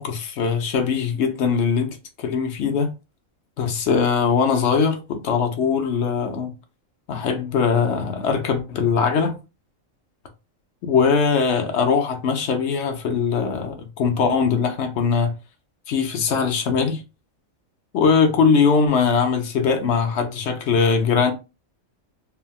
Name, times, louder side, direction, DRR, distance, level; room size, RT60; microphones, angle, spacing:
voice 1, 0.0-2.9 3.6-6.5 7.1-9.3 10.8-15.3 15.9-17.0 17.9-21.3, left 5 dB, 65° left, 0.8 m, -21 dB
3.4 x 2.1 x 2.3 m
omnidirectional pair, 1.4 m